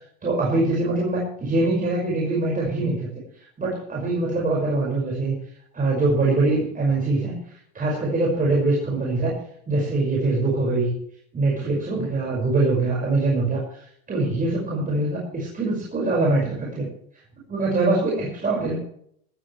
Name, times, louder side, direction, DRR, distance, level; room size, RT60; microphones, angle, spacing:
voice 1, 0.0-3.1 3.6-5.4 5.7-9.3 9.7-10.9 11.3-13.8 14.1-16.9 17.5-18.8, right 2 dB, 20° right, -3 dB, 5.8 m, -23 dB
17.0 x 14.5 x 3.3 m, 0.67 s
hypercardioid pair, 110°, 43 cm